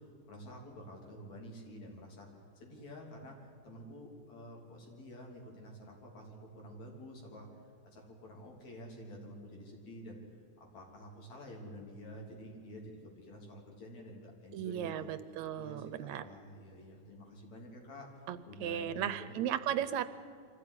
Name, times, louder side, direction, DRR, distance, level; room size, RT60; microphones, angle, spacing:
voice 1, 0.0-2.3 2.6-10.2 10.6-15.1 15.6-18.2 18.4-19.3, equal, 65° left, 0 dB, 4.6 m, -50 dB
voice 2, 14.5-16.2 18.3-20.1, right 10 dB, 75° right, 13 dB, 1.9 m, -36 dB
24.5 x 15.0 x 9.8 m, 2.4 s
omnidirectional pair, 3.4 m